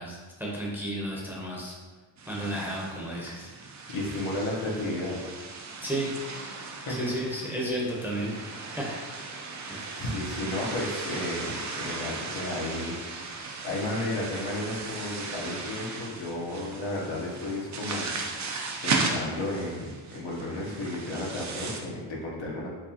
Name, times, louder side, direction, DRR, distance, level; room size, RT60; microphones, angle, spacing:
voice 1, 0.0-1.8 2.3-3.5 5.8-6.1 6.9-8.3 8.7-9.0 9.7-9.9, right 1 dB, 5° right, -4 dB, 0.7 m, -32 dB
sound 1, 2.2-21.8, right 4 dB, 40° right, 0.4 m, -36 dB
voice 2, 3.9-5.2 6.8-7.1 9.9-22.7, left 1 dB, 75° left, -3 dB, 1.0 m, -33 dB
4.6 x 2.3 x 2.8 m, 1.3 s
cardioid pair, 110°, 47 cm